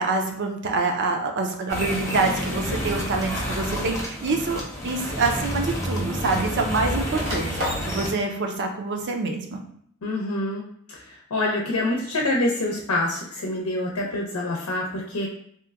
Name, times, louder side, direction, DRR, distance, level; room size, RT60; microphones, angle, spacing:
voice 1, 0.0-9.6, right 3 dB, 55° right, 3 dB, 0.5 m, -26 dB
sound 1, 1.7-8.1, equal, 15° left, 0.7 m, -29 dB
sound 2, 7.1-7.9, equal, 70° right, 1.2 m, -33 dB
voice 2, 10.0-10.6 10.9-15.3, left 1 dB, 90° left, -2 dB, 0.7 m, -26 dB
2.9 x 2.1 x 3.4 m, 0.66 s
head